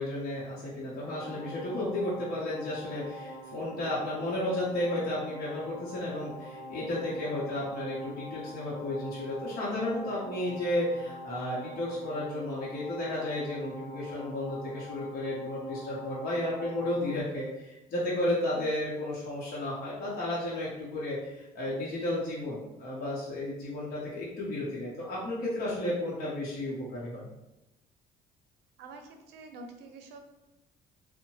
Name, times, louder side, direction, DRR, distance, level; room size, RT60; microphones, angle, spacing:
voice 1, 0.0-27.3, left 1 dB, 60° left, -7 dB, 0.9 m, -33 dB
sound 1, 1.0-17.2, left 1 dB, 30° left, 0.6 m, -44 dB
voice 2, 28.8-30.2, right 3 dB, 80° right, 5 dB, 0.5 m, -47 dB
2.7 x 2.1 x 2.9 m, 0.98 s
cardioid pair, 110°, 17 cm